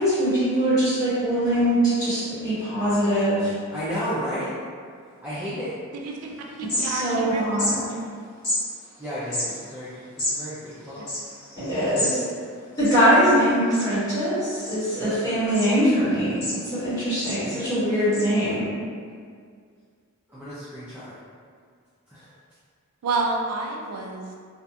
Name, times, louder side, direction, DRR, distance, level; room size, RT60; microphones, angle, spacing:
voice 1, 0.0-3.5 6.7-7.8 11.6-12.2 12.8-18.7, equal, 15° left, -14 dB, 1.3 m, -22 dB
voice 2, 3.7-4.5 5.2-5.7 9.0-9.9 10.3-11.0 20.3-21.2 22.1-22.3, equal, 10° right, -12 dB, 0.4 m, -32 dB
voice 3, 5.9-7.4 11.0-11.1 11.8-11.9 23.0-24.3, right 3 dB, 85° right, 0 dB, 0.3 m, -29 dB
sound 1, 6.1-6.2 6.5-7.3 7.5-7.7 8.4-8.6 9.2-12.2 12.5-12.6 12.7-13.4 13.7-14.1 14.6-15.1 15.5-15.7 16.1-16.9 17.2-17.4 18.1-18.2, left 1 dB, 50° left, 1.2 m, -29 dB
2.7 x 2.4 x 2.3 m, 2.1 s
head